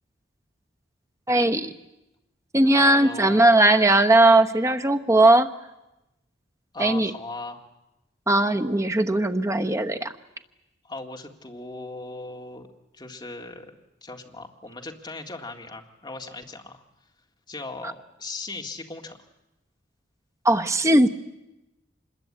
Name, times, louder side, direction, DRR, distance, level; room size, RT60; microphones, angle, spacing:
voice 1, 1.3-1.7 2.5-5.5 6.8-7.1 8.3-10.1 20.4-21.1, right 1 dB, 15° right, 6 dB, 1.0 m, -19 dB
voice 2, 2.6-3.4 6.7-7.6 10.8-12.7 12.9-13.7 14.0-16.8 17.5-19.2, left 3 dB, 25° left, 3 dB, 1.9 m, -38 dB
25.5 x 21.5 x 8.7 m, 0.94 s
head